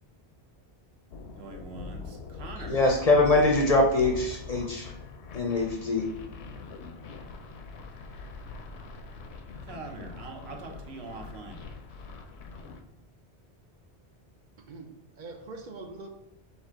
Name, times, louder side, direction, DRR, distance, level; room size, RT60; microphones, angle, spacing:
sound 1, 1.1-12.8, left 4 dB, 85° left, 0.8 m, -43 dB
voice 1, 1.3-2.8 9.6-11.6, right 3 dB, 80° right, 2 dB, 1.0 m, -43 dB
voice 2, 2.7-4.9 5.3-6.1, left 2 dB, 45° left, 1 dB, 0.6 m, -23 dB
voice 3, 14.6-16.1, right 3 dB, 60° right, 3 dB, 0.6 m, -43 dB
4.0 x 2.7 x 4.3 m, 0.84 s
omnidirectional pair, 1.1 m